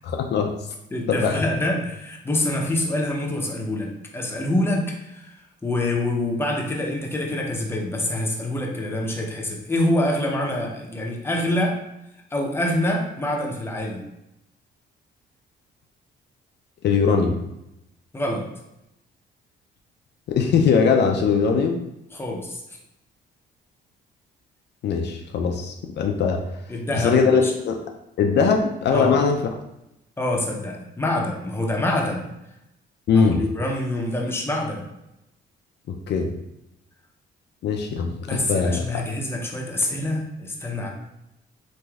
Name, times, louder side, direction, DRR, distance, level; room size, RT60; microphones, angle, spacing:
voice 1, 0.0-0.5 1.1-1.4 16.8-17.4 20.3-21.8 24.8-26.4 26.9-27.8 28.2-29.4 33.1-33.4 35.9-36.3 37.6-38.8, left 5 dB, 60° left, 3 dB, 0.4 m, -21 dB
voice 2, 0.9-11.8 12.3-14.0 18.1-18.5 22.1-22.6 26.7-27.5 28.9-29.2 30.2-32.3 33.1-34.8 38.2-40.9, left 1 dB, 10° left, 0 dB, 0.6 m, -26 dB
3.1 x 2.6 x 2.3 m, 0.85 s
cardioid pair, 90°, 20 cm